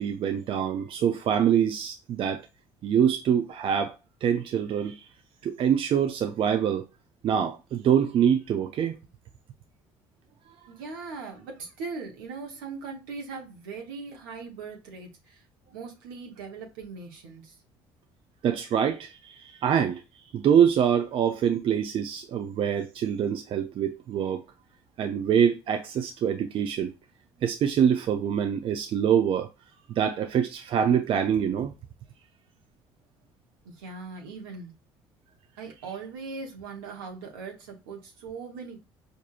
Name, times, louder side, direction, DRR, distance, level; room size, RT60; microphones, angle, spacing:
voice 1, 0.0-2.4 2.8-3.9 4.2-5.0 5.4-6.8 7.2-9.0 18.4-20.0 20.3-24.4 25.0-26.9 27.4-29.5 29.9-31.7, right 8 dB, 50° right, 0.5 m, -25 dB
voice 2, 10.7-17.6 33.6-34.7 35.6-38.8, right 4 dB, 85° right, 1.1 m, -40 dB
4.8 x 2.6 x 2.5 m
hypercardioid pair, 65°, 11 cm